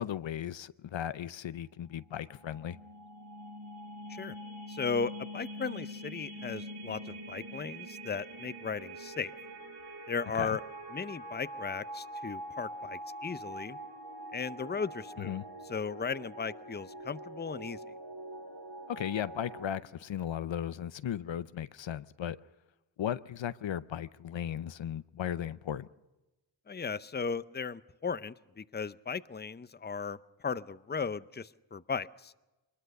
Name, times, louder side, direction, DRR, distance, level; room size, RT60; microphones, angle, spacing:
voice 1, 0.0-2.8 10.4-10.6 15.2-15.4 18.9-22.4 23.0-25.9, left 10 dB, 75° left, 0.7 m, -36 dB
sound 1, 2.2-19.7, right 1 dB, 55° right, 7.4 m, -44 dB
voice 2, 4.7-9.3 10.1-10.6 10.9-13.8 14.3-15.4 15.7-17.9 26.7-32.3, left 5 dB, 20° left, 0.6 m, -36 dB
22.5 x 20.5 x 6.6 m
cardioid pair, 55°, 46 cm